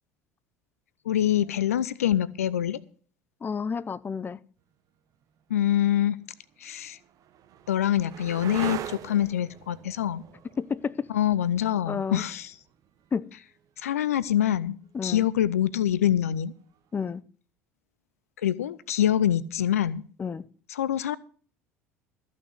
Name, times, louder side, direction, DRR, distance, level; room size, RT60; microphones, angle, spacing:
voice 1, 1.1-2.8 5.5-6.2 6.6-7.0 7.7-10.2 11.1-12.5 13.8-16.5 18.4-20.0 20.8-21.2, left 11 dB, 80° left, 0.5 m, -25 dB
voice 2, 3.4-4.4 10.6-11.1 11.9-12.3 13.1-13.3 14.9-15.3 16.9-17.2 20.2-20.4, left 6 dB, 25° left, 0.7 m, -30 dB
sound 1, 5.4-5.5 6.3-13.9 16.2-16.8, right 10 dB, 50° right, 1.0 m, -42 dB
14.0 x 6.4 x 8.0 m
figure-of-eight pair, 65°, 8 cm